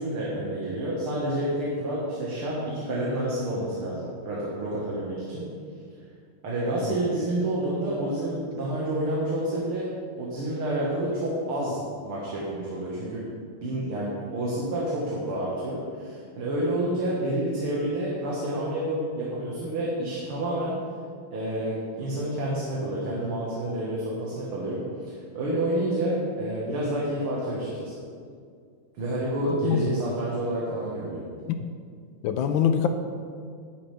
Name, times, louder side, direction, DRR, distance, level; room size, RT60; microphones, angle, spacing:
voice 1, 0.0-5.4 6.4-9.9 10.2-13.2 13.6-20.8 21.3-27.9 29.0-31.2, right 1 dB, 90° right, -6 dB, 2.7 m, -29 dB
voice 2, 29.5-29.8 31.5-31.6 32.2-32.9, left 9 dB, 75° left, 8 dB, 1.3 m, -24 dB
11.5 x 11.5 x 3.5 m, 2.2 s
omnidirectional pair, 2.3 m